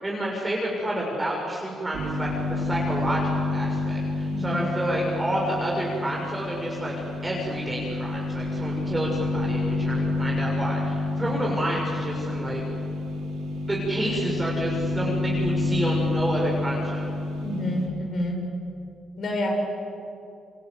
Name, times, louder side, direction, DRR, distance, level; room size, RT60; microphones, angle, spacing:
voice 1, 0.0-6.9 7.2-12.7 13.7-17.1, right 1 dB, 15° right, -3 dB, 6.7 m, -29 dB
sound 1, 1.9-17.9, left 2 dB, 85° right, 4.1 m, -28 dB
voice 2, 4.3-4.6 17.4-18.4 19.2-19.5, left 1 dB, 55° left, 1 dB, 7.2 m, -28 dB
29.0 x 25.0 x 8.1 m, 2.8 s
cardioid pair, 90°, 0 cm